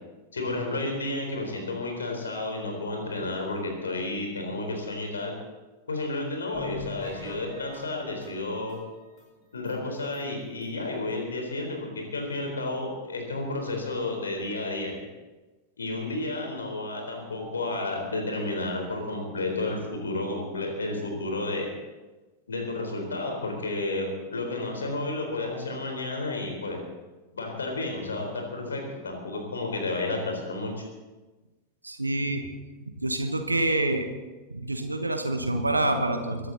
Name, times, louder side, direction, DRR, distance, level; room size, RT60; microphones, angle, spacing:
voice 1, 0.3-5.3 5.9-8.8 9.5-15.1 15.8-21.7 22.5-26.8 27.4-30.7, left 2 dB, 70° left, 2 dB, 4.0 m, -31 dB
sound 1, 6.5-9.3 9.7-9.8 10.1-10.2 10.6-10.7, left 3 dB, 40° left, 3.9 m, -43 dB
voice 2, 31.8-32.5 33.0-34.1 34.5-36.5, right 2 dB, 85° right, 6 dB, 1.2 m, -27 dB
22.5 x 11.5 x 4.1 m, 1.2 s
figure-of-eight pair, 90°, 0 cm